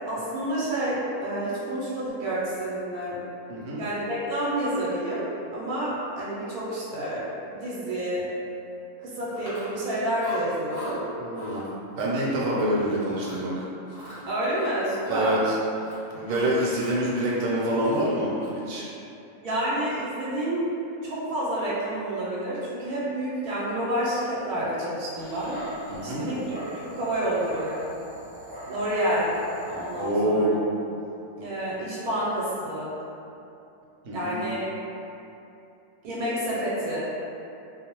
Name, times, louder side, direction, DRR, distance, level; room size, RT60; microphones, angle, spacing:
voice 1, 0.0-3.2 3.8-8.3 9.0-11.1 14.3-15.4 19.4-20.7 21.0-25.6 26.0-27.8 28.7-29.4 29.7-30.5 31.4-32.9 34.1-34.7 36.0-37.0, right 1 dB, 90° right, -8 dB, 1.1 m, -29 dB
voice 2, 3.5-3.8 11.2-11.6 12.0-13.7 15.1-15.6 15.8-18.8 25.9-26.2 30.0-30.6 34.0-34.4, right 1 dB, 70° right, -6 dB, 0.9 m, -26 dB
Chewing mastication, 9.4-9.9 10.2-10.9 11.3-11.6 12.0-12.8 13.1-13.5 13.9-15.5 15.8-17.0 17.3-18.7, equal, 50° left, 0.9 m, -43 dB
Dog, 25.1-30.1, left 1 dB, 15° left, 0.9 m, -40 dB
2.5 x 2.0 x 2.8 m, 2.8 s
omnidirectional pair, 1.5 m